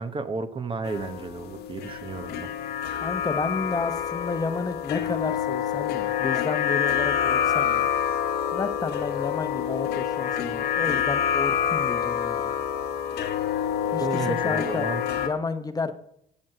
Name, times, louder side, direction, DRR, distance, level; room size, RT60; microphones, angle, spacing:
voice 1, 0.0-2.5 14.0-15.0, right 4 dB, 30° right, 10 dB, 1.0 m, -32 dB
sound 1, 0.8-15.3, left 9 dB, 75° left, 1.5 m, -27 dB
voice 2, 3.0-7.9 8.5-12.4 13.9-14.9 15.2-15.9, left 4 dB, 20° left, 10 dB, 0.9 m, -31 dB
16.0 x 6.3 x 7.6 m, 0.74 s
cardioid pair, 110°, 17 cm